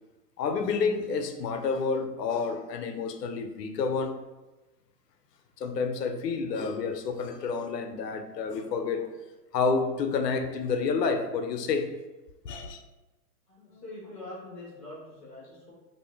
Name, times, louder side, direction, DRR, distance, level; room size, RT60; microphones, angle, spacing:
voice 1, 0.4-4.2 5.6-9.1 9.5-11.9 12.4-12.8, left 5 dB, 85° left, 7 dB, 0.6 m, -29 dB
voice 2, 13.5-15.7, left 1 dB, 10° right, -18 dB, 0.3 m, -44 dB
2.6 x 2.5 x 3.5 m, 1.1 s
hypercardioid pair, 140°, 48 cm